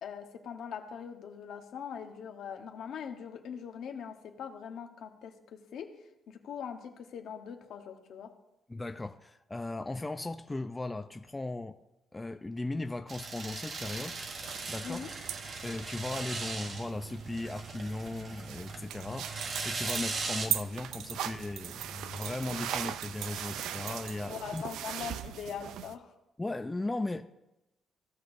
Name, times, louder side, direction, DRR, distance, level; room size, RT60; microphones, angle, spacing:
voice 1, 0.0-5.9 6.3-8.3 14.8-15.1 24.2-26.1, left 7 dB, 75° left, 4 dB, 1.1 m, -42 dB
voice 2, 8.7-11.8 12.1-14.2 14.7-15.0 15.6-19.3 19.6-24.6 26.4-27.2, left 2 dB, 15° left, 6 dB, 0.5 m, -37 dB
sound 1, 13.1-20.5, right 4 dB, 50° right, 1.1 m, -39 dB
sound 2, 13.8-26.0, right 10 dB, 85° right, 0.4 m, -40 dB
16.0 x 6.0 x 2.6 m, 0.90 s
cardioid pair, 90°, 0 cm